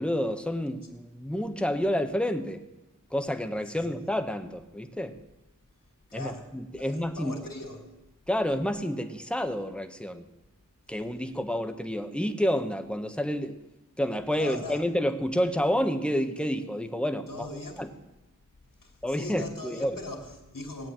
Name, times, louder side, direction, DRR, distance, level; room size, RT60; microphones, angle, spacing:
voice 1, 0.0-2.6 3.1-5.2 6.1-7.4 8.3-10.2 10.9-13.6 14.0-17.5 17.8-17.9 19.0-20.0, equal, 5° left, 7 dB, 1.3 m, -29 dB
voice 2, 6.1-7.9 14.3-14.8 17.3-17.9 18.8-20.9, left 2 dB, 70° left, 2 dB, 2.6 m, -40 dB
18.5 x 8.2 x 9.2 m, 0.99 s
wide cardioid pair, 50°, 33 cm